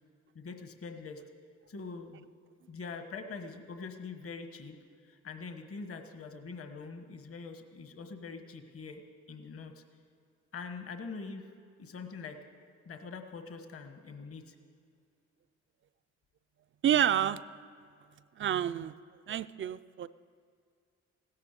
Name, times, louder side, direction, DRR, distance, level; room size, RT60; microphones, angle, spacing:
voice 1, 0.3-1.2 1.7-2.3 2.7-4.8 5.1-9.0 9.3-9.8 10.5-11.5 11.8-12.4 12.8-14.5, left 4 dB, 50° left, 7 dB, 1.4 m, -43 dB
voice 2, 16.8-17.4 18.4-18.9 19.3-20.1, right 10 dB, 40° right, 14 dB, 0.4 m, -28 dB
16.0 x 12.0 x 6.7 m, 2.3 s
cardioid pair, 90°, 30 cm